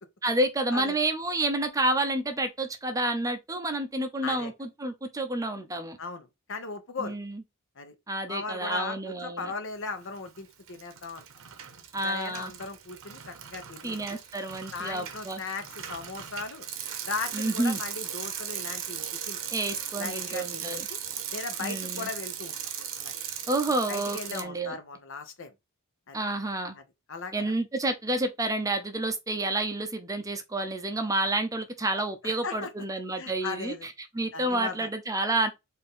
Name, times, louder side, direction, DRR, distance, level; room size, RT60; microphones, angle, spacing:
voice 1, 0.2-6.0 7.0-7.4 8.1-9.5 11.9-12.5 13.8-15.4 17.3-17.8 19.5-20.9 21.6-22.1 23.5-24.8 26.1-26.8 27.3-35.5, right 2 dB, 15° right, 0.5 m, -29 dB
voice 2, 6.0-7.2 7.8-7.9 8.3-11.2 12.0-14.0 14.7-16.7 17.0-19.4 20.0-21.0 21.3-22.6 23.0-23.1 23.9-25.5 26.1-26.2 26.7-26.8 27.1-27.5 32.2-32.7 33.2-33.9 34.3-34.9, left 4 dB, 60° left, 0.9 m, -37 dB
Bicycle, 10.0-10.4 10.7-24.4, right 9 dB, 65° right, 0.8 m, -38 dB
4.3 x 2.7 x 3.6 m
head